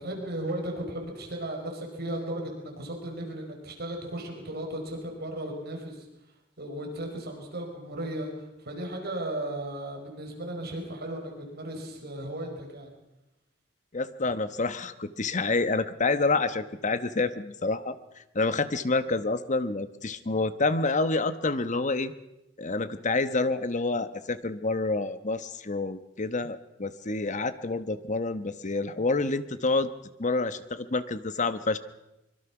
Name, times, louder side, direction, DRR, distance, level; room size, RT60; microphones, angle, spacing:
voice 1, 0.0-6.1 6.6-8.3 8.6-12.9, right 1 dB, 55° right, 2 dB, 5.1 m, -35 dB
voice 2, 13.9-22.1 22.6-29.9 30.2-31.8, left 3 dB, 40° left, 12 dB, 1.1 m, -28 dB
24.5 x 22.5 x 6.0 m, 0.93 s
head